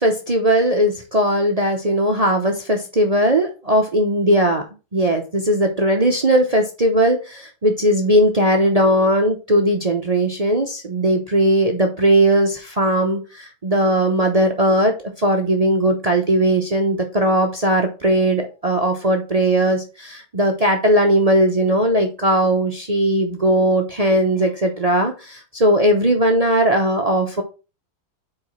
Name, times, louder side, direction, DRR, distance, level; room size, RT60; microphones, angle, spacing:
voice 1, 0.0-4.6 4.9-27.4, right 1 dB, 70° right, 3 dB, 0.3 m, -18 dB
5.0 x 4.9 x 5.6 m, 0.31 s
omnidirectional pair, 2.1 m